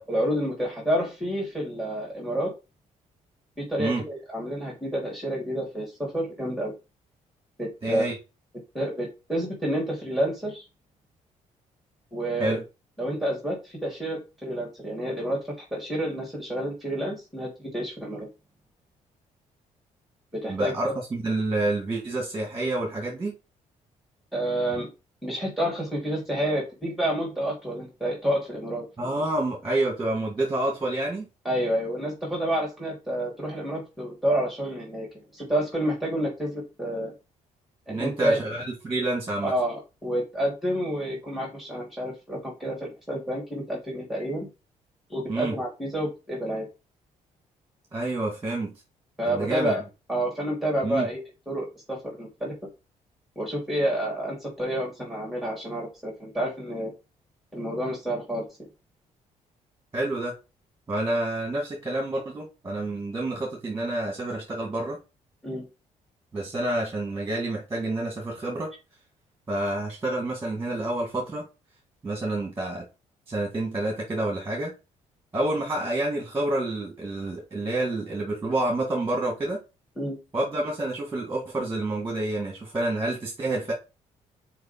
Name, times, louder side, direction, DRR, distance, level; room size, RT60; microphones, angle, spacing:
voice 1, 0.0-2.5 3.6-6.7 7.6-8.0 8.7-10.6 12.1-12.6 13.0-15.4 15.7-18.3 20.3-20.7 24.3-24.9 25.2-29.1 31.4-35.1 35.3-37.1 37.9-38.4 39.4-44.5 45.1-46.7 49.2-49.8 50.1-51.2 51.5-52.5 53.3-56.9 57.5-58.7 65.4-65.7 80.0-80.2, right 1 dB, ahead, 2.9 m, -29 dB
voice 2, 7.8-8.2 12.4-12.6 20.5-23.3 29.0-31.3 37.9-39.5 45.3-45.5 47.9-48.7 49.3-49.7 50.8-51.1 59.9-60.4 60.9-65.0 66.3-68.7 69.5-71.4 72.0-72.9 73.3-74.7 75.3-79.6 80.3-83.7, right 2 dB, 20° right, 2.0 m, -28 dB
4.7 x 4.7 x 4.4 m
cardioid pair, 115°, 13 cm